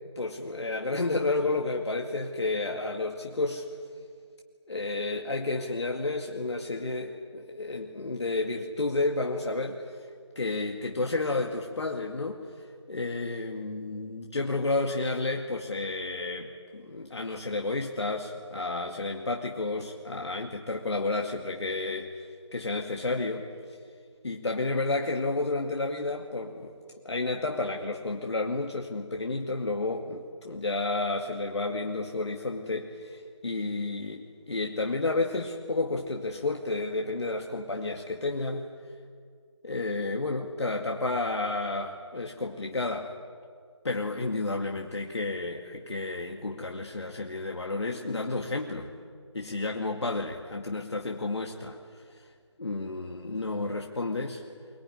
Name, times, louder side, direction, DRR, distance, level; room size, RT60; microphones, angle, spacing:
voice 1, 0.2-3.6 4.7-9.8 10.4-12.5 12.9-22.2 22.5-23.5 24.2-26.7 27.0-38.7 39.6-43.1 43.8-48.9 49.3-51.8 52.6-54.4, left 2 dB, 65° left, 1 dB, 2.3 m, -31 dB
24.0 x 22.0 x 9.7 m, 2.1 s
figure-of-eight pair, 160°, 15 cm